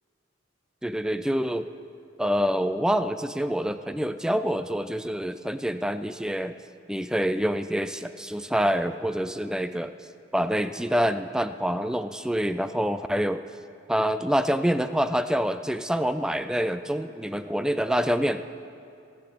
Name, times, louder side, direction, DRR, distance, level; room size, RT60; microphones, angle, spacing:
voice 1, 0.8-1.7 2.2-6.6 6.9-9.9 10.3-13.4 13.9-18.4, equal, 5° right, 11 dB, 0.3 m, -26 dB
17.5 x 7.8 x 6.8 m, 2.5 s
head